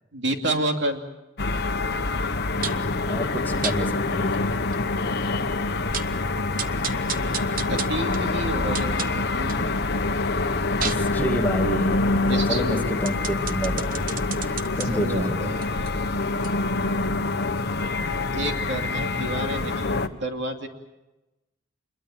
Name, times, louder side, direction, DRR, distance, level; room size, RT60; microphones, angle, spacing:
voice 1, 0.1-1.0 7.7-9.7 12.3-13.1 14.9-15.7 16.7-17.2 18.1-20.7, right 1 dB, 60° right, 4 dB, 2.7 m, -30 dB
sound 1, 1.4-20.1, left 3 dB, 55° left, 1.2 m, -26 dB
voice 2, 2.5-4.5 6.2-6.4 10.7-14.2 14.4-15.5, equal, 10° left, 2 dB, 2.3 m, -30 dB
sound 2, 2.6-2.9 3.6-3.8 4.3-4.4 4.7-4.8 5.3-5.4 5.7-6.2 6.6-9.7 10.1-14.9 15.5-18.2 18.5-18.6, right 7 dB, 45° right, 1.0 m, -35 dB
27.0 x 22.0 x 7.3 m, 1.0 s
head